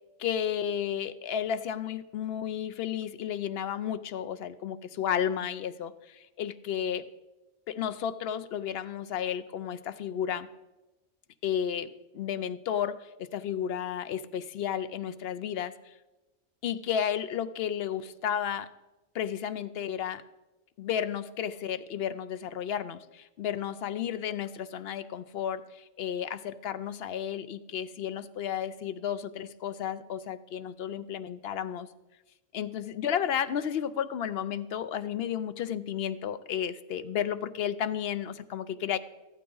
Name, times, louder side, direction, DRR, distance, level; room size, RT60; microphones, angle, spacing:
voice 1, 0.2-7.1 7.7-10.5 11.4-16.0 16.6-18.7 19.1-20.2 20.8-31.9 32.5-39.0, left 9 dB, 65° left, 12 dB, 0.6 m, -32 dB
14.5 x 12.5 x 3.9 m, 1.1 s
omnidirectional pair, 1.4 m